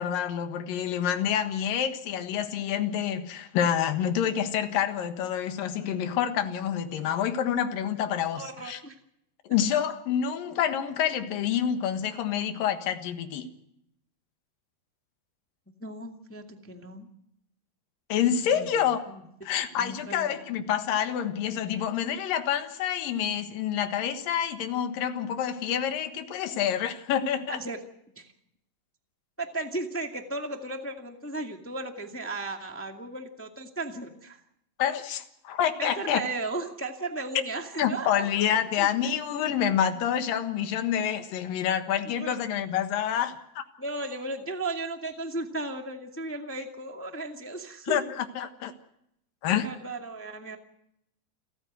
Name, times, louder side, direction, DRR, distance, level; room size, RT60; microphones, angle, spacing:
voice 1, 0.0-8.8 9.4-13.5 18.1-19.0 19.4-27.6 34.8-36.2 37.8-43.6 47.9-48.7 49.4-49.7, left 9 dB, 75° left, 8 dB, 3.2 m, -28 dB
voice 2, 8.3-8.9 15.8-17.1 18.4-18.9 19.7-20.3 27.5-27.8 28.1-28.2 29.4-34.4 35.8-38.4 38.8-38.9 42.0-42.4 43.8-48.0 49.6-50.6, right 2 dB, 10° left, 4 dB, 0.9 m, -35 dB
29.0 x 14.0 x 6.3 m, 0.77 s
omnidirectional pair, 4.2 m